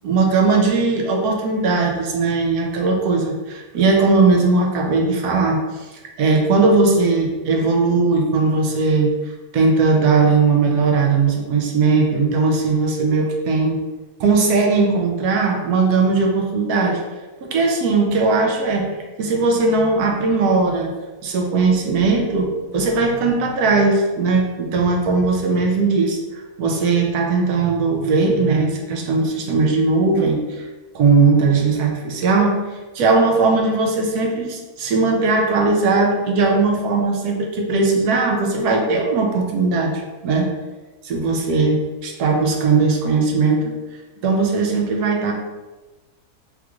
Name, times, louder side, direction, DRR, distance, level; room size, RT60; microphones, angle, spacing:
voice 1, 0.0-5.9 6.2-9.1 9.5-13.8 14.2-17.0 17.4-18.9 19.2-20.9 21.2-26.2 26.6-30.7 30.9-32.6 32.9-40.5 41.0-43.8 44.2-45.3, right 3 dB, 80° right, 2 dB, 1.1 m, -18 dB
3.5 x 2.4 x 2.9 m, 1.2 s
omnidirectional pair, 1.7 m